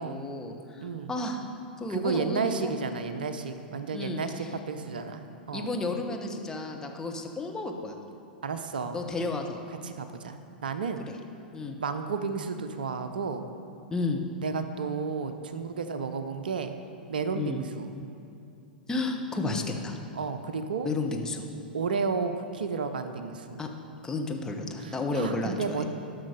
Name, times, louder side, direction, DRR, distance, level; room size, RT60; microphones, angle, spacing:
voice 1, 0.0-1.5 1.8-2.8 3.9-4.5 5.5-8.0 8.9-9.6 11.5-11.8 13.9-14.2 17.3-17.6 18.9-20.0 20.8-21.5 23.6-23.7 24.0-25.9, left 3 dB, 10° left, 2 dB, 1.0 m, -32 dB
voice 2, 1.9-5.7 8.4-9.0 9.8-10.4 10.6-11.1 11.8-13.5 14.4-16.8 17.1-17.9 20.2-20.9 21.7-23.6 24.8-25.9, right 5 dB, 70° right, 9 dB, 0.6 m, -32 dB
12.5 x 6.3 x 5.2 m, 2.5 s
figure-of-eight pair, 95°, 5 cm